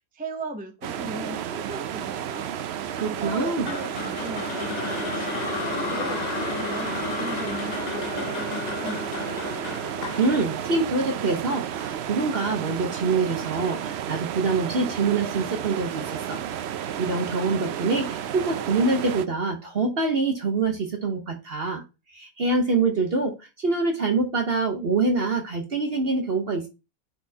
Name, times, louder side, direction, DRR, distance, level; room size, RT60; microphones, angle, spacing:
voice 1, 0.1-9.1, right 2 dB, 10° right, 5 dB, 0.4 m, -38 dB
sound 1, 0.8-19.3, right 9 dB, 70° right, 0.6 m, -32 dB
voice 2, 3.0-3.7 10.2-16.4 17.0-21.8 22.1-26.7, right 3 dB, 45° right, 3 dB, 1.1 m, -25 dB
sound 2, 3.7-11.8, left 5 dB, 50° left, 0.5 m, -33 dB
9.5 x 4.2 x 2.8 m, 0.28 s
omnidirectional pair, 1.6 m